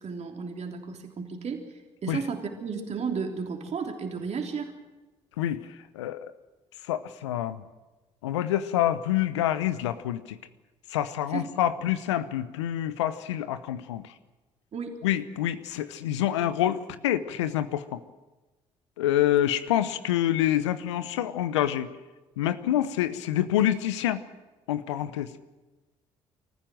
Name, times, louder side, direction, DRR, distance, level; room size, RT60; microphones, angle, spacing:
voice 1, 0.0-1.6 2.0-4.7 11.3-11.7 14.7-15.0, right 5 dB, 50° right, 3 dB, 3.4 m, -33 dB
voice 2, 5.9-6.3 6.9-7.6 8.2-10.4 10.9-14.1 15.0-16.8 17.0-18.0 19.0-21.9 22.4-24.2 24.7-25.3, left 12 dB, 85° left, 14 dB, 0.8 m, -27 dB
24.0 x 14.5 x 7.7 m, 1.1 s
hypercardioid pair, 50°, 15 cm